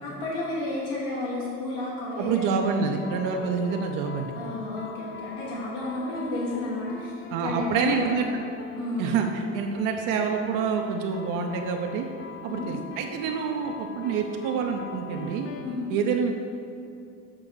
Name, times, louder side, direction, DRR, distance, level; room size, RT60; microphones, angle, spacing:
voice 1, 0.0-2.7 4.3-7.1 7.4-9.2 12.5-12.7 15.6-15.9, left 2 dB, 70° left, -5 dB, 1.6 m, -32 dB
voice 2, 2.2-4.3 7.3-8.3 9.0-12.1 12.4-15.5 15.9-16.3, right 6 dB, 70° right, 3 dB, 0.7 m, -27 dB
sound 1, 2.3-15.6, left 5 dB, 35° left, 0.7 m, -43 dB
7.5 x 3.8 x 6.2 m, 2.6 s
cardioid pair, 160°, 33 cm